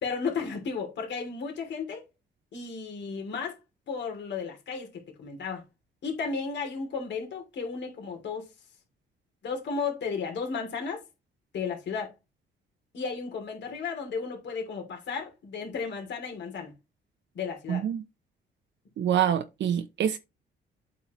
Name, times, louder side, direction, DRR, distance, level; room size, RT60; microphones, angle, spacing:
voice 1, 0.0-2.0 2.5-3.6 3.9-5.6 6.0-8.5 9.4-11.0 11.5-12.1 12.9-16.7 17.3-17.9, left 5 dB, 65° left, 3.1 m, -34 dB
voice 2, 17.7-18.0 19.0-20.2, right 9 dB, 65° right, 0.8 m, -26 dB
8.2 x 7.1 x 3.1 m
cardioid pair, 90°, 20 cm